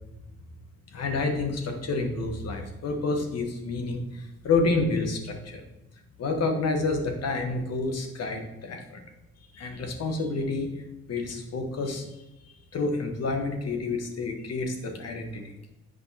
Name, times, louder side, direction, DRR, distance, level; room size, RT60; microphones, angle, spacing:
voice 1, 0.9-5.6 6.2-9.0 9.5-10.8 11.1-12.0 12.4-15.6, left 3 dB, 55° left, 4 dB, 1.3 m, -29 dB
8.1 x 5.2 x 2.9 m, 0.95 s
cardioid pair, 90°, 30 cm